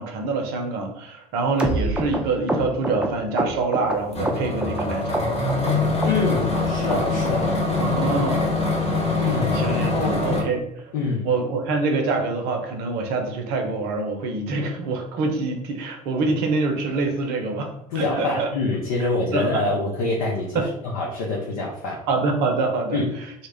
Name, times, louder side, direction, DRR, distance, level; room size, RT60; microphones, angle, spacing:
voice 1, 0.0-5.4 7.8-8.5 9.5-10.6 11.2-18.5 19.3-19.6 20.5-20.6 22.1-23.0, right 3 dB, 60° right, 4 dB, 0.6 m, -25 dB
sound 1, 1.6-4.8 5.1-5.7 6.0-6.6 6.9-7.0 7.2-7.5 7.8-7.9 8.1-8.3 8.7-8.8 9.0-9.2 9.5-9.6 9.9-10.1 10.4-10.5 10.8-11.0 11.3-11.4, right 1 dB, 5° right, 0.4 m, -27 dB
sound 2, 4.1-10.4, left 3 dB, 35° left, 0.8 m, -24 dB
voice 2, 6.0-7.6 9.2-10.2 10.9-11.3 17.9-20.7 20.9-22.0 22.9-23.1, left 3 dB, 70° left, -2 dB, 0.6 m, -25 dB
2.1 x 2.0 x 3.3 m, 0.77 s
hypercardioid pair, 65°, 19 cm